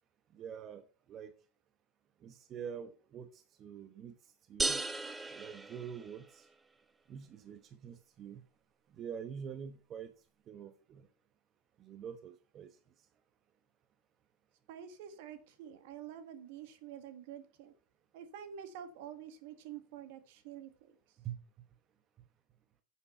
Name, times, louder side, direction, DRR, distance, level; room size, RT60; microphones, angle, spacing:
voice 1, 0.3-1.3 2.2-4.1 4.5-4.8 5.3-6.5 7.1-8.4 9.0-10.1 10.5-11.1 11.8-12.7 21.2-21.4, right 8 dB, 40° right, 1.0 m, -45 dB
sound 1, 4.6-6.4, right 3 dB, 15° right, 1.0 m, -36 dB
voice 2, 14.7-17.7 18.1-21.0, right 9 dB, 70° right, 1.6 m, -48 dB
9.9 x 7.3 x 4.3 m
hypercardioid pair, 100°, 0 cm